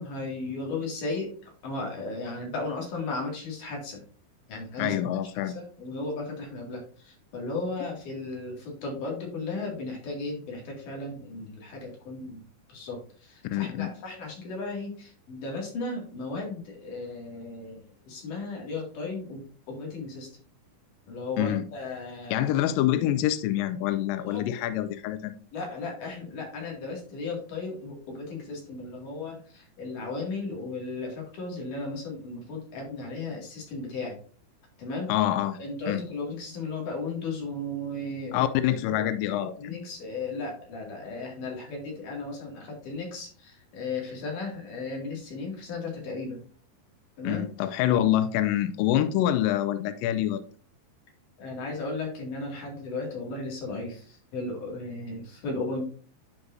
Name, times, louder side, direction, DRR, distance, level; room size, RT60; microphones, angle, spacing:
voice 1, 0.0-1.3 1.6-4.0 4.5-5.0 5.5-12.4 12.7-20.3 21.1-22.4 24.3-24.6 25.5-34.2 34.8-35.1 35.6-38.5 38.9-46.4 47.2-47.5 51.4-55.9, left 3 dB, 60° left, 3.5 m, -35 dB
voice 2, 4.8-5.6 13.4-13.9 21.4-21.6 22.3-25.3 35.1-35.6 35.9-36.0 38.3-39.8 47.2-50.4, left 12 dB, 85° left, 2.0 m, -26 dB
11.5 x 4.7 x 2.6 m
omnidirectional pair, 4.5 m